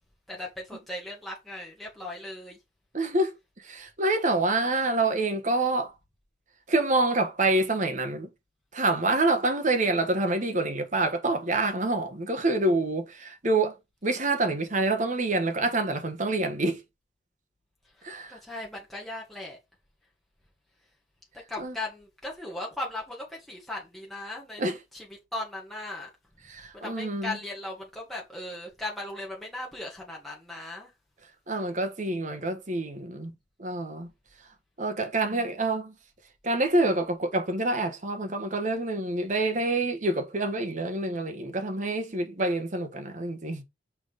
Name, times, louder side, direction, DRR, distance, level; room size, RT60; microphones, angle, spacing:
voice 1, 0.3-2.6 18.0-19.6 21.5-24.6 24.9-26.1 26.7-30.9, left 2 dB, ahead, 1.9 m, -38 dB
voice 2, 2.9-3.3 3.6-5.9 6.7-8.3 8.7-16.8 18.0-18.4 21.6-21.7 24.6-24.8 26.5-27.4 31.5-33.3 33.6-34.1 34.8-35.9 36.4-43.6, right 2 dB, 45° right, 1.2 m, -27 dB
6.1 x 4.0 x 5.0 m
head